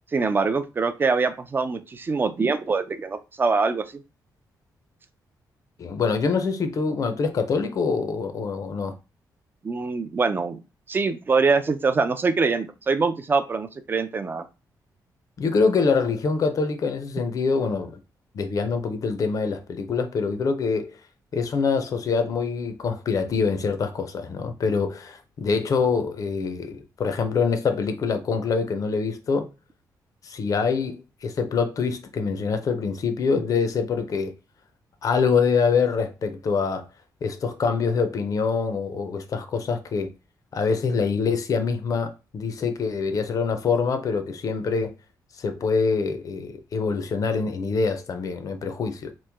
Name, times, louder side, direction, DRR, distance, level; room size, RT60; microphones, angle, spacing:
voice 1, 0.1-3.8 9.6-10.6 10.9-14.5, right 4 dB, 30° right, 0.4 m, -24 dB
voice 2, 5.8-8.9 15.4-17.9 18.3-21.0 21.3-29.5 30.2-34.3 35.0-36.9 37.2-40.1 40.5-44.9 45.4-49.1, left 5 dB, 55° left, 0.5 m, -25 dB
3.0 x 2.1 x 3.4 m
cardioid pair, 110°, 7 cm